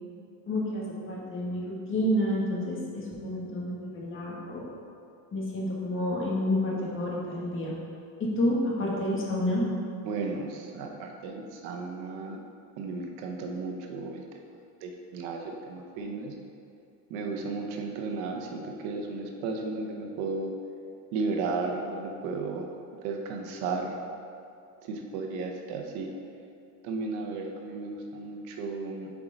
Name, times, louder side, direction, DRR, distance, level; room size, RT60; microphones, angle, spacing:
voice 1, 0.5-4.7 5.3-7.8 8.2-9.6, left 1 dB, 35° left, -4 dB, 1.6 m, -29 dB
voice 2, 10.0-12.4 12.8-14.2 14.8-16.3 17.1-20.5 21.1-22.7 23.0-24.0 24.8-26.1 26.8-29.1, right 3 dB, 85° right, 2 dB, 1.0 m, -34 dB
7.1 x 4.8 x 3.9 m, 2.5 s
cardioid pair, 125°, 37 cm